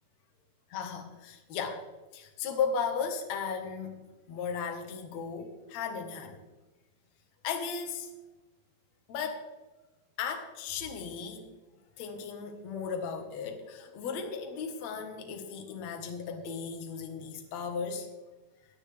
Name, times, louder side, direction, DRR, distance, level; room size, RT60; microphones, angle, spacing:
voice 1, 0.7-1.9 2.1-6.4 7.4-8.1 9.1-9.4 10.2-11.5 12.0-18.1, left 6 dB, 75° left, 3 dB, 1.5 m, -36 dB
19.0 x 11.5 x 3.4 m, 1.1 s
omnidirectional pair, 5.6 m